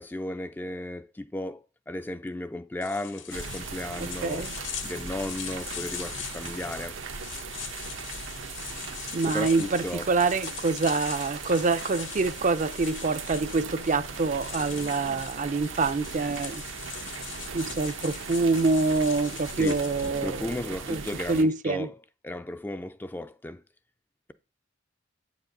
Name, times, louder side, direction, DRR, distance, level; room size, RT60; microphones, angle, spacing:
voice 1, 0.0-4.5 4.8-7.0 9.2-10.1 19.6-19.8 20.2-21.9 22.2-23.6, left 1 dB, 10° left, 0.4 m, -34 dB
sound 1, 2.8-20.2, left 9 dB, 75° left, 1.3 m, -41 dB
sound 2, 3.3-21.4, right 5 dB, 90° right, 1.1 m, -39 dB
voice 2, 4.0-4.5 9.1-16.6 17.5-20.5 20.9-21.0 21.3-21.9, right 3 dB, 40° right, 0.5 m, -26 dB
8.1 x 4.9 x 6.5 m
head